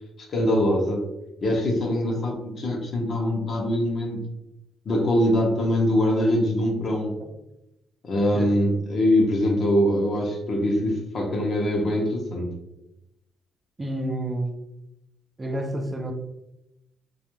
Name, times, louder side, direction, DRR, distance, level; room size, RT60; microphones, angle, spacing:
voice 1, 0.3-1.1 1.4-4.2 4.9-7.1 8.0-12.5, left 1 dB, 50° left, 0 dB, 0.7 m, -23 dB
voice 2, 13.8-14.6 15.4-16.1, right 1 dB, 25° right, 4 dB, 0.3 m, -29 dB
2.3 x 2.1 x 3.0 m, 0.90 s
cardioid pair, 90°, 0 cm